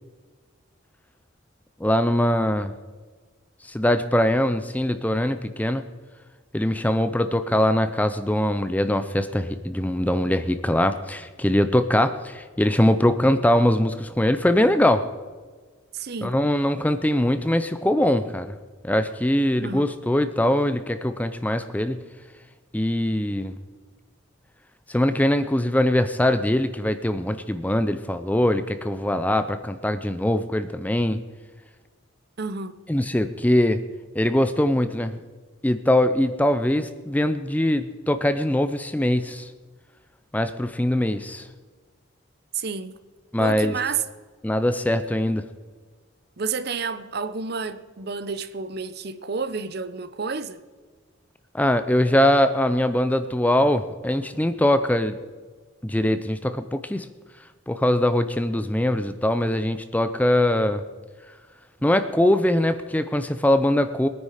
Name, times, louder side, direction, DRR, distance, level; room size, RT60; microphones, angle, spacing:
voice 1, 1.8-2.7 3.6-5.9 6.5-15.1 16.2-18.5 18.8-22.0 22.7-23.5 24.9-31.2 32.9-33.8 34.1-35.2 35.6-39.5 40.3-41.5 43.3-43.8 44.4-45.4 51.5-55.2 55.8-57.1 57.7-60.8 61.8-64.1, left 1 dB, 5° left, 0.5 m, -22 dB
voice 2, 15.9-16.3 19.6-19.9 32.4-32.8 42.5-43.0 43.4-44.0 46.4-50.6, right 5 dB, 50° right, 0.7 m, -30 dB
21.0 x 9.7 x 4.9 m
head